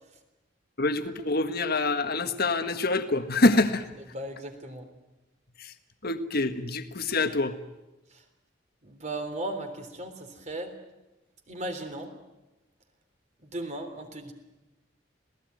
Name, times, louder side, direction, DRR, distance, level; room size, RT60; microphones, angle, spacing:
voice 1, 0.8-3.8 5.6-5.7 6.0-7.6, left 2 dB, 55° left, 8 dB, 1.6 m, -25 dB
voice 2, 4.1-4.9 8.8-10.7 11.5-12.1 13.4-14.3, right 1 dB, 40° right, 6 dB, 3.5 m, -36 dB
27.0 x 18.0 x 9.5 m, 1.0 s
head